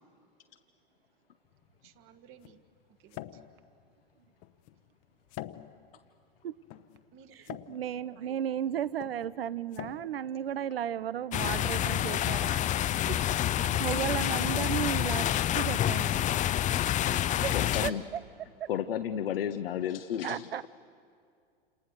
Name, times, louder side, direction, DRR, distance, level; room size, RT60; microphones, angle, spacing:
sound 1, 1.5-11.3, left 14 dB, 50° left, 1.0 m, -48 dB
voice 1, 1.8-2.6 3.0-3.4 7.1-7.7 8.1-8.3 8.7-8.8 13.6-13.9 17.0-17.3, right 9 dB, 45° right, 9 dB, 1.7 m, -55 dB
voice 2, 7.4-12.7 13.1-13.2 13.5-15.3 15.5-16.3 17.4-17.9 18.6-18.7 20.2-20.7, right 10 dB, 80° right, 19 dB, 0.7 m, -34 dB
sound 2, 11.3-17.9, left 12 dB, 25° left, 0.6 m, -28 dB
voice 3, 17.5-18.0 18.7-20.7, left 9 dB, 75° left, 9 dB, 0.9 m, -32 dB
28.5 x 28.0 x 6.7 m, 2.3 s
hypercardioid pair, 95°, 29 cm